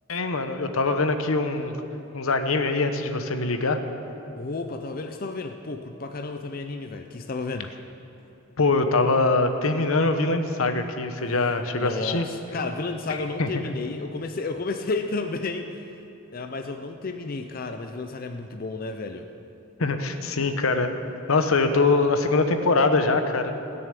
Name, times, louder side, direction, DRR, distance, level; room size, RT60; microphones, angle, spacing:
voice 1, 0.1-1.7 2.1-3.8 8.6-12.3 13.4-13.5 19.8-20.9 21.3-23.5, left 3 dB, 85° left, 7 dB, 0.9 m, -23 dB
voice 2, 4.4-7.7 11.8-15.8 16.3-19.3, left 3 dB, 45° left, 6 dB, 0.5 m, -32 dB
17.5 x 6.9 x 8.3 m, 2.9 s
head